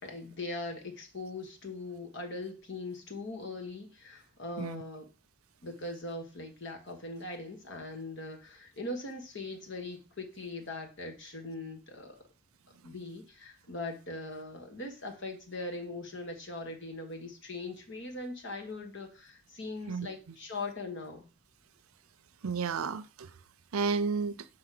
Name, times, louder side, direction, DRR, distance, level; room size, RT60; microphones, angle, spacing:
voice 1, 0.0-5.1 5.6-12.2 12.8-21.3, left 2 dB, 55° left, 1.6 m, -41 dB
voice 2, 22.4-23.3 23.7-24.5, right 5 dB, 85° right, 0.6 m, -32 dB
5.4 x 4.9 x 5.9 m
head